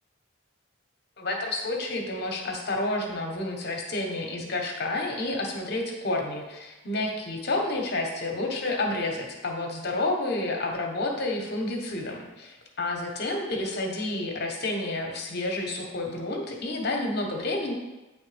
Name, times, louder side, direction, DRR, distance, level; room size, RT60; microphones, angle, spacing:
voice 1, 1.2-17.7, left 2 dB, 50° left, 1 dB, 0.9 m, -30 dB
8.8 x 3.2 x 3.3 m, 1.1 s
head